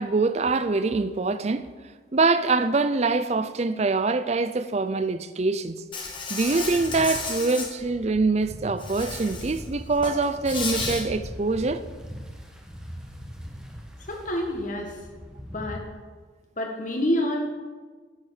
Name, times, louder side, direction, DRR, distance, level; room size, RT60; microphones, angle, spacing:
voice 1, 0.0-1.7 2.1-5.8 6.3-11.8, right 3 dB, 35° right, 0.5 m, -24 dB
Insect, 5.9-7.7 8.8-9.6 9.9-11.0, left 4 dB, 25° left, 1.4 m, -32 dB
sound 1, 6.0-15.8, equal, 5° right, 1.2 m, -40 dB
voice 2, 14.1-15.0 15.5-15.8 16.6-17.4, left 1 dB, 45° left, 1.8 m, -27 dB
10.5 x 7.1 x 6.6 m
head